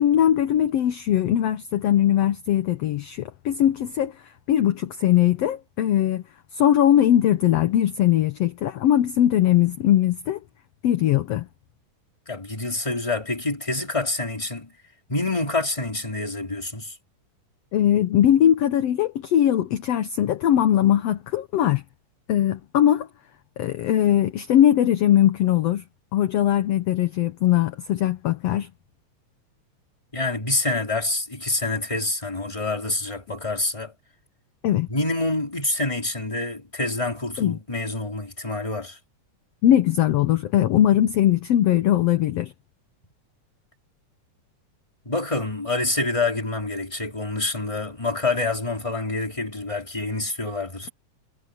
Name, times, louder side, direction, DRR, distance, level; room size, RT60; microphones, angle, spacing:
voice 1, 0.0-4.1 4.5-6.2 6.5-10.4 10.8-11.5 17.7-21.8 22.3-23.1 23.6-25.8 26.1-28.7 34.6-34.9 37.4-37.6 39.6-42.5, left 11 dB, 65° left, 1.7 m, -20 dB
voice 2, 12.3-14.7 15.1-17.0 30.1-33.9 34.9-39.0 45.1-50.9, left 2 dB, 10° left, 3.7 m, -27 dB
omnidirectional pair, 3.8 m